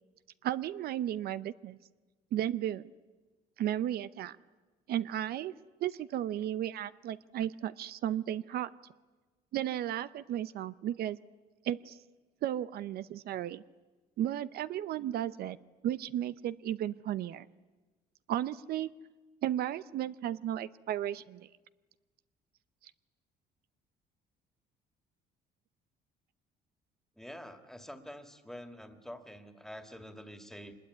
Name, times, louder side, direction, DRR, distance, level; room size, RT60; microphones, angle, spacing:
voice 1, 0.4-1.8 2.3-2.9 3.6-4.4 4.9-5.5 5.8-8.7 9.5-11.2 11.6-12.0 12.4-13.6 14.2-15.6 15.8-17.5 18.3-18.9 19.4-21.5, right 11 dB, 65° right, 15 dB, 0.7 m, -34 dB
voice 2, 27.2-30.8, equal, ahead, 7 dB, 2.3 m, -47 dB
24.0 x 21.0 x 9.6 m, 1.3 s
cardioid pair, 110°, 17 cm